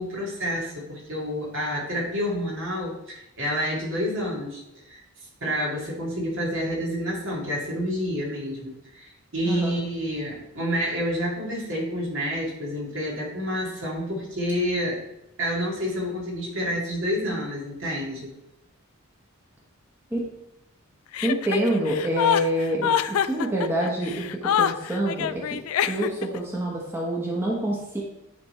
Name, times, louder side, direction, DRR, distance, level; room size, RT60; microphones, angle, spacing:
voice 1, 0.0-5.0 5.4-15.0 15.4-18.3, equal, 60° right, -4 dB, 2.3 m, -29 dB
voice 2, 9.4-9.8 20.1-20.2 21.2-25.4 25.9-28.0, right 1 dB, 10° right, -4 dB, 1.2 m, -26 dB
Chuckle chortle, 21.1-26.4, left 9 dB, 75° left, 0.3 m, -25 dB
9.5 x 3.5 x 4.3 m, 0.87 s
head